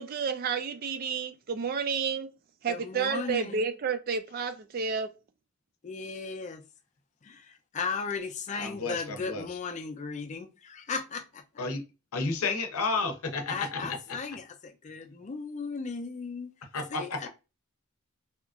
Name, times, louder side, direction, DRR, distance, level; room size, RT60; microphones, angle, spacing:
voice 1, 0.0-2.3 2.6-5.1, right 6 dB, 45° right, 0.3 m, -30 dB
voice 2, 2.7-3.7 5.8-6.6 7.2-11.4 13.5-16.5 16.9-17.3, left 4 dB, 35° left, 0.4 m, -36 dB
voice 3, 8.6-9.4 11.6-11.8 12.1-14.0 16.7-17.3, left 3 dB, 90° left, 0.6 m, -31 dB
2.8 x 2.4 x 2.4 m
head